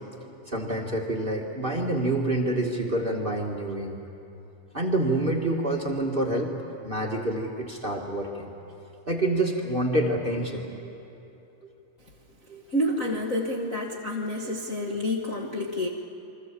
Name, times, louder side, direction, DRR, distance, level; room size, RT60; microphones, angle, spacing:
voice 1, 0.5-3.9 4.7-6.5 6.8-8.5 9.1-10.9 12.5-12.6 14.4-15.0, right 1 dB, 25° right, 0 dB, 1.2 m, -27 dB
voice 2, 12.7-15.9, left 1 dB, 80° left, -1 dB, 0.7 m, -28 dB
28.5 x 23.5 x 7.5 m, 2.9 s
omnidirectional pair, 3.9 m